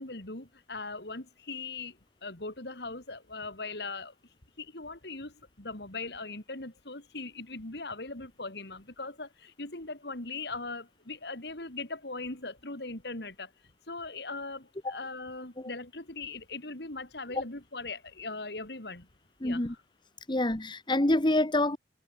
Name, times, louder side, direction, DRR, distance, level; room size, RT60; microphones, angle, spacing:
voice 1, 0.0-4.1 4.6-13.5 13.9-19.1 19.4-19.8, left 3 dB, 60° left, 3.1 m, -40 dB
voice 2, 19.4-19.7 20.3-21.8, left 1 dB, 25° left, 1.2 m, -27 dB
head